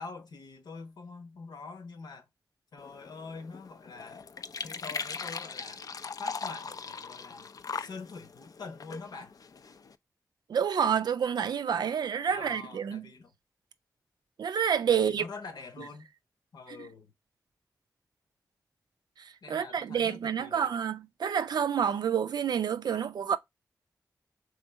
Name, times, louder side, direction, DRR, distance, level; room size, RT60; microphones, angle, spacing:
voice 1, 0.0-2.3 2.7-4.3 4.6-5.8 6.2-7.5 7.7-9.3 12.3-13.3 14.9-16.1 16.5-17.1 19.4-20.7, left 4 dB, 80° left, 1.0 m, -45 dB
sound 1, 2.8-10.0, left 5 dB, 60° left, 0.4 m, -40 dB
voice 2, 10.5-13.1 14.4-15.2 16.7-16.8 19.2-23.4, right 8 dB, 85° right, 0.4 m, -28 dB
3.6 x 3.1 x 4.5 m
cardioid pair, 45°, 7 cm